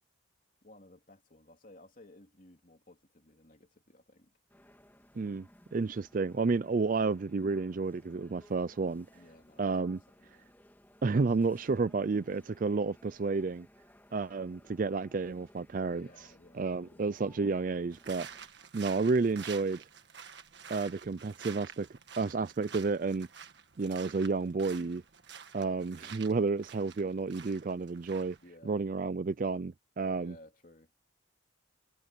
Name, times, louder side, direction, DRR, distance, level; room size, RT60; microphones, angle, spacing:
voice 1, 0.6-4.4 9.1-10.5 15.9-17.6 22.2-22.5 28.4-28.8 30.1-30.9, left 1 dB, 40° left, 3.1 m, -58 dB
sound 1, 4.5-18.5, left 1 dB, 10° left, 3.1 m, -61 dB
voice 2, 5.2-9.1 9.6-10.0 11.0-13.7 14.1-16.1 16.5-18.3 18.7-19.9 20.7-21.9 22.2-23.3 23.8-25.0 25.5-28.4 28.7-30.3, right 4 dB, 40° right, 0.4 m, -31 dB
sound 2, 17.9-28.5, right 7 dB, 55° right, 1.7 m, -49 dB
head